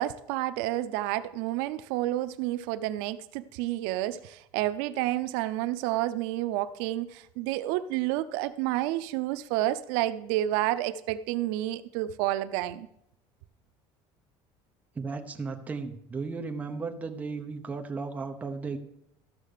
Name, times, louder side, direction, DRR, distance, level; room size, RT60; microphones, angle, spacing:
voice 1, 0.0-12.9, right 14 dB, 80° right, 13 dB, 0.6 m, -30 dB
voice 2, 15.0-18.8, right 4 dB, 15° right, 5 dB, 0.8 m, -35 dB
13.0 x 6.4 x 6.7 m, 0.77 s
cardioid pair, 175°, 11 cm